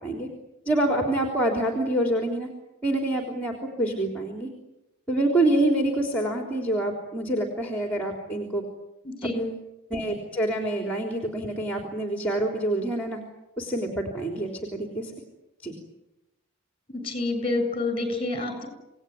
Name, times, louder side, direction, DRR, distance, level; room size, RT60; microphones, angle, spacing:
voice 1, 0.7-2.5 2.8-4.5 5.1-8.6 9.3-9.6 9.9-13.2 13.6-15.1 15.6-15.8, right 1 dB, 10° left, 2 dB, 3.6 m, -26 dB
voice 2, 9.0-9.4 16.9-18.7, left 2 dB, 25° left, 7 dB, 7.4 m, -28 dB
27.5 x 19.0 x 9.7 m, 0.96 s
head